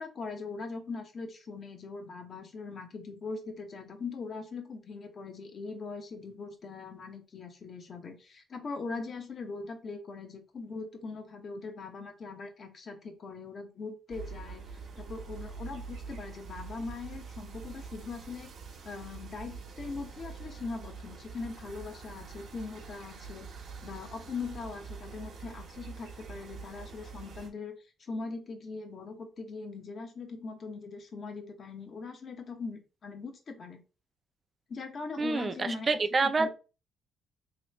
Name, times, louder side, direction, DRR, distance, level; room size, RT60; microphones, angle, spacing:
voice 1, 0.0-14.6 15.0-18.5 18.8-23.5 23.8-33.8 34.7-35.9 36.2-36.5, left 4 dB, 50° left, 0.8 m, -41 dB
sound 1, 14.1-27.5, right 5 dB, 70° right, 1.0 m, -45 dB
voice 2, 35.2-36.5, right 3 dB, 35° right, 0.4 m, -27 dB
3.1 x 3.0 x 3.0 m
cardioid pair, 90°, 0 cm